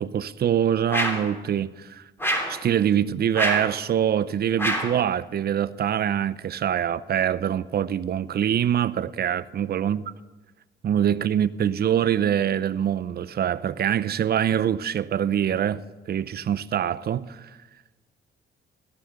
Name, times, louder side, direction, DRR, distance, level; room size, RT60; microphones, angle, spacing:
voice 1, 0.0-2.0 2.5-10.1 10.8-17.5, right 9 dB, 55° right, 0.7 m, -24 dB
sound 1, 0.9-1.3 2.2-2.6 3.4-3.7 4.6-5.0, equal, 10° left, 3.2 m, -26 dB
17.0 x 12.5 x 6.7 m
cardioid pair, 90°, 20 cm